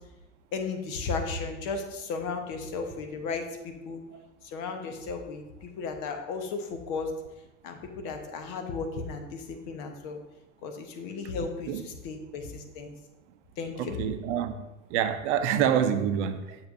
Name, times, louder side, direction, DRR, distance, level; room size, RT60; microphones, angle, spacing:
voice 1, 0.5-4.0 4.4-7.1 7.6-10.2 10.6-12.9 13.6-14.1, left 4 dB, 55° left, 1.1 m, -35 dB
voice 2, 13.8-16.6, right 9 dB, 60° right, 0.7 m, -27 dB
7.2 x 7.0 x 2.7 m
figure-of-eight pair, 75°, 39 cm